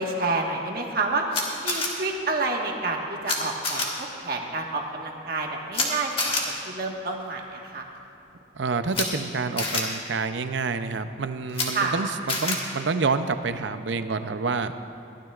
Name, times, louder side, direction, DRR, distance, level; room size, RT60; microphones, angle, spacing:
voice 1, 0.0-7.8 11.7-11.9, right 3 dB, 50° right, 0 dB, 1.5 m, -29 dB
Camera, 1.3-1.9 3.3-3.4 3.6-3.9 5.7-5.9 6.2-6.4 8.9-9.0 9.6-9.8 11.5-11.7 12.3-12.6, left 3 dB, 30° left, 1.7 m, -26 dB
voice 2, 8.6-14.7, right 4 dB, 70° right, 10 dB, 0.6 m, -28 dB
22.0 x 15.5 x 2.5 m, 2.8 s
head